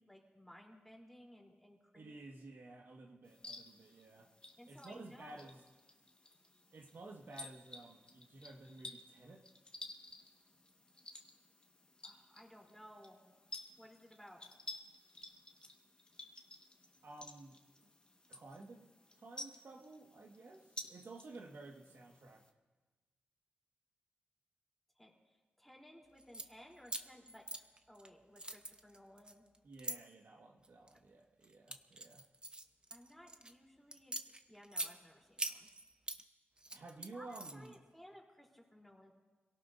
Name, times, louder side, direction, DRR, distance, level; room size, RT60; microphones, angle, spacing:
voice 1, 0.0-2.1 4.6-5.5 12.0-13.2 13.8-14.4 25.0-25.1 25.6-27.5 27.9-29.4 32.9-34.2 34.5-35.7 37.0-39.1, equal, 5° left, -1 dB, 3.5 m, -58 dB
voice 2, 1.9-4.3 4.6-5.6 6.7-9.4 17.0-17.6 18.3-22.4 29.6-32.2 36.7-37.8, right 2 dB, 65° right, 0 dB, 1.6 m, -53 dB
sound 1, 3.2-22.5, left 2 dB, 25° left, 1.5 m, -54 dB
sound 2, 26.2-26.5 26.9-28.1 28.4-30.0 30.6-31.0 31.4-33.5 33.9-34.9 35.4-36.2 36.6-37.8, right 2 dB, 25° right, 1.0 m, -43 dB
26.5 x 17.5 x 2.7 m, 1.3 s
cardioid pair, 80°, 4 cm